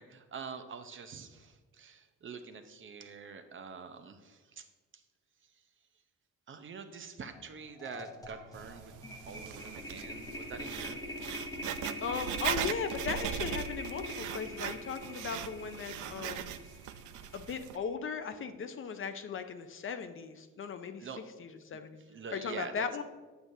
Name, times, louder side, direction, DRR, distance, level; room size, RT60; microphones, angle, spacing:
voice 1, 0.0-4.6 6.5-11.0 21.0-21.2 22.1-22.7, right 5 dB, 40° right, 8 dB, 0.7 m, -46 dB
sound 1, 7.3-7.5 7.8-18.0, left 1 dB, 10° left, 0.8 m, -44 dB
Writing, 8.5-17.8, right 10 dB, 80° right, 0.5 m, -39 dB
voice 2, 12.0-16.6 17.3-21.1 21.4-22.0 22.3-23.0, left 6 dB, 45° left, 8 dB, 0.6 m, -37 dB
8.1 x 7.4 x 2.7 m, 1.3 s
cardioid pair, 90°, 30 cm